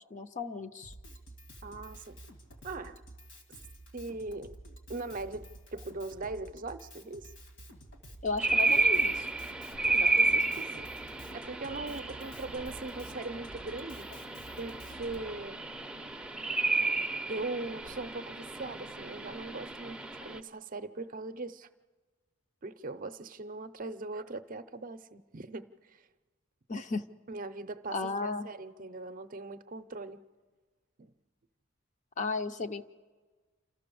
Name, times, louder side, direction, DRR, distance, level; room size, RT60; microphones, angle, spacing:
voice 1, 0.1-0.9 8.2-9.3 26.7-27.0 27.9-28.5 32.2-32.8, left 3 dB, 40° left, 8 dB, 0.7 m, -34 dB
Drum kit, 0.8-15.2, right 1 dB, 65° left, 2.0 m, -51 dB
voice 2, 1.6-2.2 2.6-3.0 3.9-4.5 4.9-7.3 9.8-10.9 11.3-14.1 14.6-15.6 17.3-21.7 22.6-26.1 27.3-30.2 31.0-31.1, right 3 dB, 45° right, 11 dB, 0.6 m, -40 dB
sound 1, 8.4-20.4, right 3 dB, 5° right, 0.6 m, -32 dB
28.0 x 13.5 x 6.9 m, 1.4 s
head